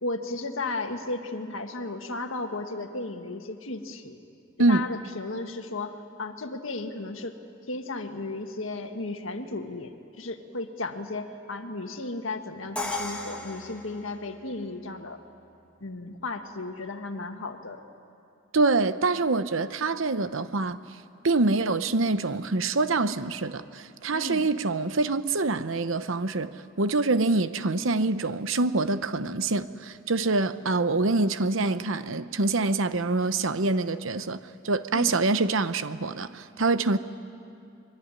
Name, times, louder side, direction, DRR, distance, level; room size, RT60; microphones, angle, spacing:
voice 1, 0.0-4.2 4.7-7.4 7.7-9.9 10.2-15.2 15.8-17.8 24.1-24.5 34.9-35.1, left 2 dB, 75° left, 1.8 m, -34 dB
Crash cymbal, 12.8-14.7, left 2 dB, 5° left, 2.1 m, -35 dB
voice 2, 18.5-20.8 21.2-34.4 34.6-37.0, right 3 dB, 75° right, 0.9 m, -25 dB
25.0 x 23.0 x 9.9 m
head